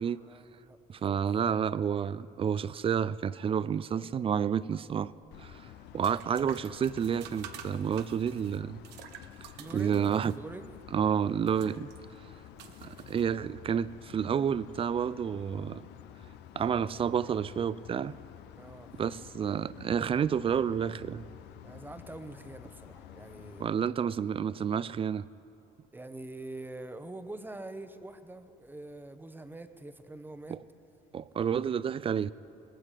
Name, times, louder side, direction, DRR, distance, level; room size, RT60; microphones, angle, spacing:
voice 1, 0.3-1.2 9.6-10.7 18.6-18.9 21.6-23.7 25.9-30.6, right 2 dB, 10° right, 0.8 m, -45 dB
voice 2, 0.9-5.1 5.4-5.5 5.9-8.8 9.7-10.3 10.9-11.9 12.8-15.8 16.6-18.1 19.0-21.2 23.6-25.3 30.5-30.6 31.1-32.3, right 8 dB, 35° right, 0.4 m, -30 dB
sound 1, 5.2-13.7, right 9 dB, 85° right, 1.0 m, -51 dB
sound 2, 5.3-23.7, left 11 dB, 85° left, 0.7 m, -50 dB
19.0 x 15.5 x 5.0 m
cardioid pair, 110°, 17 cm